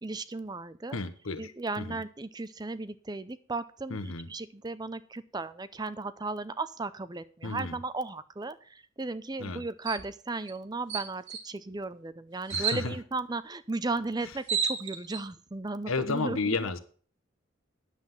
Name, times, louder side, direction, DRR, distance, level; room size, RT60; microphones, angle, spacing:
voice 1, 0.0-1.0 1.4-4.0 4.3-16.6, right 3 dB, 20° right, 14 dB, 0.5 m, -35 dB
voice 2, 0.9-2.0 3.9-4.3 7.4-7.8 9.4-9.6 12.5-13.0 14.2-14.4 15.9-16.8, left 3 dB, 80° left, 11 dB, 1.2 m, -33 dB
sound 1, 9.9-10.1 10.5-10.6 10.9-11.4 12.5-12.8 14.0-14.1 14.3-15.2, right 6 dB, 60° right, 1.9 m, -31 dB
9.9 x 7.8 x 5.6 m, 0.42 s
head